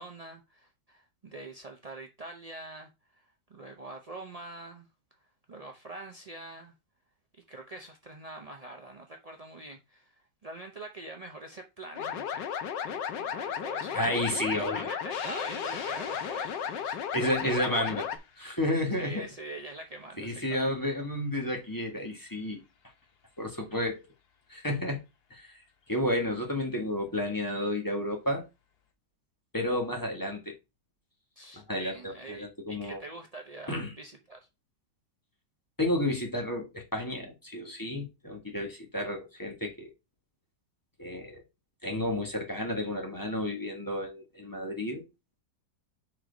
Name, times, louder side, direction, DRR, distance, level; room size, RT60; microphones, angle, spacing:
voice 1, 0.0-4.9 5.5-6.7 7.5-12.5 12.8-14.0 14.7-17.0 19.0-20.8 31.4-34.4, right 2 dB, 55° right, 0.4 m, -44 dB
sound 1, 12.0-18.2, left 8 dB, 80° left, 1.5 m, -34 dB
voice 2, 13.9-14.9 17.1-18.1 18.4-19.3 20.2-22.6 23.4-24.0 24.5-25.0 25.3-25.5 25.9-28.4 29.5-30.5 31.5-33.0 33.7-33.9 35.8-39.9 41.0-41.4 41.8-45.0, left 1 dB, 10° left, 1.4 m, -31 dB
sound 2, 15.1-21.8 22.2-22.3 23.6-23.7 25.8-25.9 27.3-27.6, left 5 dB, 45° left, 0.9 m, -47 dB
4.6 x 4.5 x 5.1 m
omnidirectional pair, 1.9 m